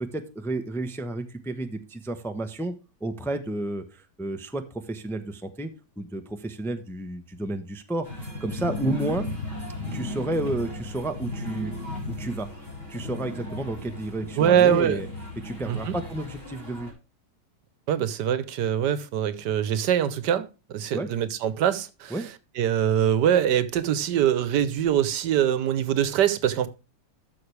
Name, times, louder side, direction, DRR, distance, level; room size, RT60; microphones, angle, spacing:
voice 1, 0.0-2.7 3.0-5.7 6.0-9.3 9.9-11.7 12.2-12.5 12.9-15.1 15.4-16.9 20.9-21.1 22.1-22.2, right 2 dB, ahead, 0.5 m, -31 dB
sound 1, 8.0-16.9, left 2 dB, 35° left, 4.3 m, -35 dB
voice 2, 14.4-15.0 15.7-15.9 17.9-22.1 22.6-26.7, right 9 dB, 90° right, 1.5 m, -23 dB
12.5 x 6.7 x 3.3 m
omnidirectional pair, 1.8 m